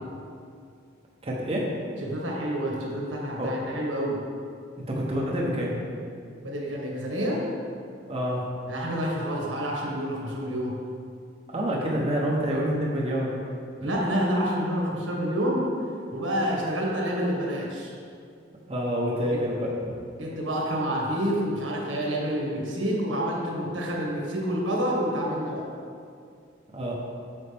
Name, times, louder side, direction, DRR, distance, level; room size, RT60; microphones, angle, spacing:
voice 1, 1.2-1.7 3.4-3.5 4.9-5.7 8.1-8.5 11.5-13.4 18.7-19.9 26.7-26.9, equal, 30° right, -4 dB, 0.9 m, -27 dB
voice 2, 2.0-4.2 6.4-7.4 8.7-10.8 13.8-15.6 16.1-17.9 19.3-19.4 20.2-25.6, equal, 80° right, -3 dB, 1.7 m, -28 dB
8.6 x 6.3 x 3.5 m, 2.3 s
head